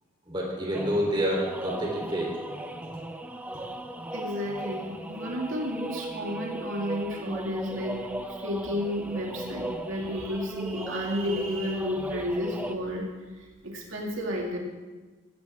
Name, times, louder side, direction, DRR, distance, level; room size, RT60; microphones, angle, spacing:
voice 1, 0.3-2.4, equal, 25° right, -2 dB, 3.5 m, -28 dB
sound 1, 0.7-12.8, right 1 dB, 10° right, 0.7 m, -38 dB
voice 2, 4.1-8.0 8.4-13.1 13.4-14.6, equal, 90° right, -1 dB, 2.4 m, -32 dB
15.0 x 15.0 x 3.6 m, 1.2 s
head